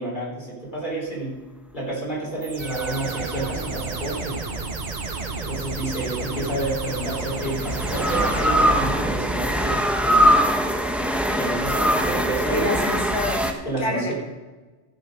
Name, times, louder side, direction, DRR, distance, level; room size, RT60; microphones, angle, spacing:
voice 1, 0.0-1.4 1.7-4.4 5.5-10.5 11.4-12.7 13.6-14.1, right 2 dB, 40° left, -4 dB, 3.7 m, -29 dB
sound 1, 2.4-9.2, right 3 dB, 40° right, 1.0 m, -33 dB
sound 2, 2.6-4.1 6.0-13.5, equal, ahead, 0.7 m, -23 dB
sound 3, 2.6-9.4, right 7 dB, 65° right, 0.8 m, -38 dB
voice 2, 12.5-13.5 13.8-14.1, left 1 dB, 85° left, -3 dB, 2.9 m, -26 dB
15.0 x 6.8 x 5.1 m, 1.3 s
omnidirectional pair, 1.2 m